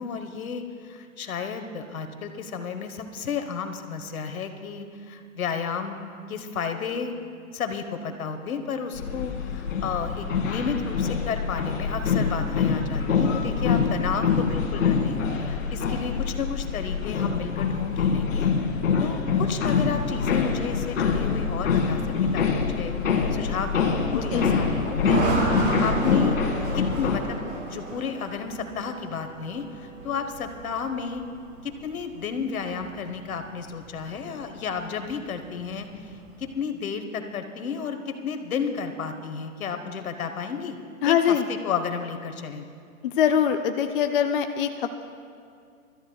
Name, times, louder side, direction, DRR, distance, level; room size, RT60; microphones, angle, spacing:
voice 1, 0.0-6.0 6.3-7.1 7.5-18.5 19.0-22.9 23.3-25.2 25.5-26.4 26.7-27.4 27.7-31.2 31.6-36.1 36.4-40.8 41.1-42.7, left 6 dB, 75° left, 7 dB, 1.4 m, -32 dB
sound 1, 8.9-27.2, left 5 dB, 60° left, 2.0 m, -25 dB
sound 2, 19.6-36.5, right 3 dB, 40° right, 3.2 m, -34 dB
voice 2, 41.0-41.4 43.0-45.1, left 9 dB, 40° left, 6 dB, 0.5 m, -23 dB
24.5 x 13.5 x 2.3 m, 2.3 s
hypercardioid pair, 145°, 42 cm